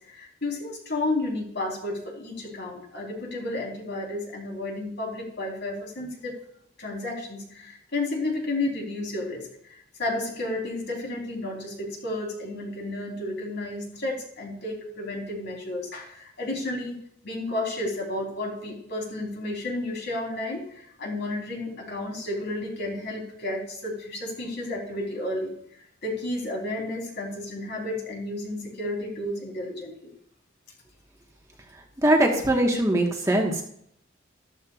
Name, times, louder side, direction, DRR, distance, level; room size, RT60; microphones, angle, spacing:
voice 1, 0.1-6.4 6.8-9.5 10.0-17.0 17.2-25.5 26.0-30.1, left 2 dB, 60° left, -1 dB, 3.7 m, -32 dB
voice 2, 32.0-33.6, right 1 dB, 15° right, 0 dB, 1.4 m, -21 dB
14.0 x 12.5 x 2.4 m, 0.69 s
head